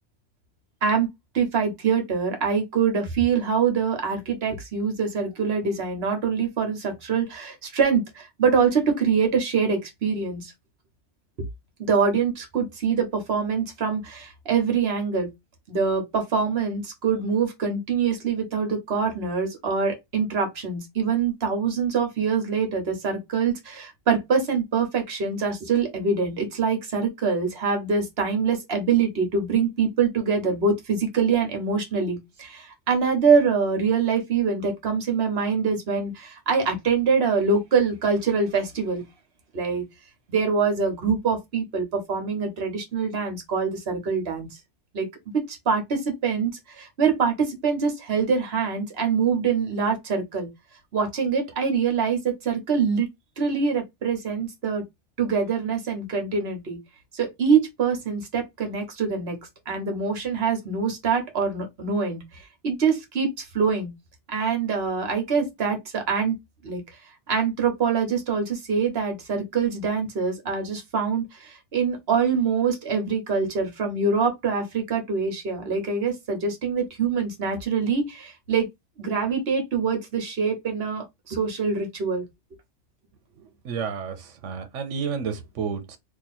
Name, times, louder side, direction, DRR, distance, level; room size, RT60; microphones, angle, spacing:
voice 1, 1.3-10.5 11.8-15.3 15.7-39.0 39.5-39.8 40.3-44.5 44.9-45.1 45.3-50.5 50.9-53.1 53.4-54.8 55.2-56.8 57.1-59.4 59.7-63.9 64.3-66.3 66.6-66.8 67.3-78.7 79.0-82.2, right 5 dB, 60° right, 1.3 m, -24 dB
voice 2, 83.6-86.0, right 6 dB, 85° right, 1.0 m, -31 dB
3.0 x 2.5 x 4.0 m
omnidirectional pair, 1.2 m